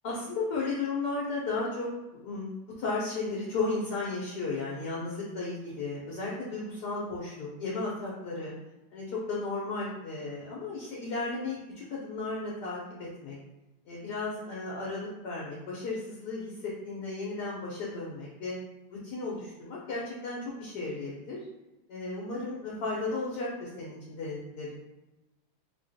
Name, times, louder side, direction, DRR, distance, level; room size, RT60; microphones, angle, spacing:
voice 1, 0.0-8.5 8.9-13.4 13.9-18.6 18.9-21.5 21.9-24.8, left 3 dB, 65° left, -4 dB, 1.2 m, -34 dB
3.6 x 2.9 x 2.7 m, 1.0 s
omnidirectional pair, 2.1 m